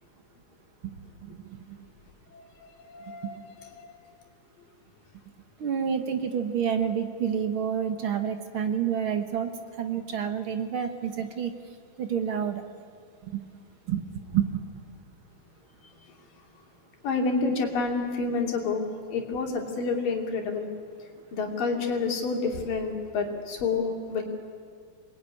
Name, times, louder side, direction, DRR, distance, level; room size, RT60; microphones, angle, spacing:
voice 1, 1.2-1.6 3.2-3.4 5.6-9.5 9.8-11.5 12.0-12.6 13.2-13.4 13.9-14.6, right 8 dB, 55° right, 7 dB, 1.6 m, -29 dB
voice 2, 2.3-3.9 17.0-20.7 21.3-24.2, left 4 dB, 80° left, 1 dB, 4.6 m, -29 dB
27.5 x 21.0 x 9.8 m, 2.1 s
omnidirectional pair, 3.8 m